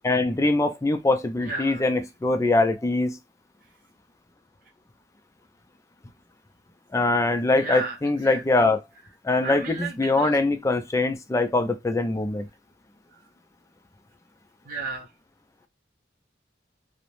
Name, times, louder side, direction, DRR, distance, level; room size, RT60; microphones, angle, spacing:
voice 1, 0.0-3.2 6.9-8.8 9.2-12.5, left 2 dB, 15° left, 0.3 m, -23 dB
voice 2, 1.4-1.9 7.5-8.0 8.2-8.6 9.4-10.4 14.6-15.1, right 3 dB, 50° right, 0.6 m, -33 dB
2.5 x 2.0 x 3.0 m
head